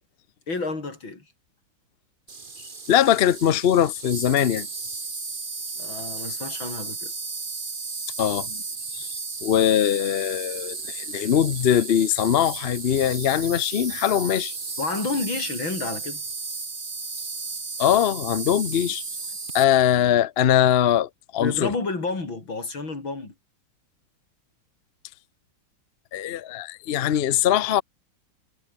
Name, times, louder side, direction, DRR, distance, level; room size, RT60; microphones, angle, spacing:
voice 1, 0.5-1.2 5.8-7.1 14.8-16.2 21.4-23.3, left 3 dB, 85° left, 6.1 m, -30 dB
Insect, 2.3-19.6, right 4 dB, 25° right, 1.7 m, -34 dB
voice 2, 2.9-4.7 8.2-8.6 8.9-9.1 9.4-14.5 17.8-19.0 19.5-21.7 26.1-27.8, left 10 dB, 60° left, 0.6 m, -21 dB
omnidirectional pair, 2.1 m